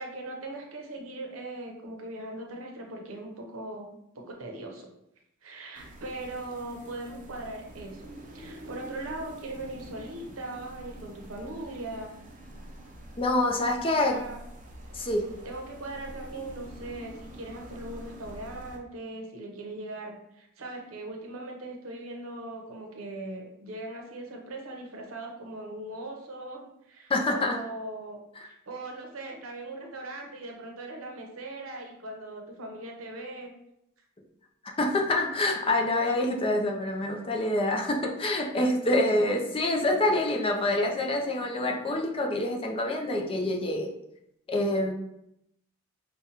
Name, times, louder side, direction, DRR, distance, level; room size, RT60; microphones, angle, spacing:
voice 1, 0.0-4.9 5.4-12.2 14.0-14.4 15.4-33.5, right 2 dB, 80° right, 2 dB, 0.8 m, -40 dB
sound 1, 5.7-18.8, right 1 dB, 40° right, 0.6 m, -46 dB
voice 2, 13.2-14.2 14.9-15.3 27.1-27.6 34.8-43.9 44.5-44.9, left 1 dB, 25° left, 1 dB, 0.5 m, -26 dB
5.1 x 2.3 x 2.8 m, 0.79 s
head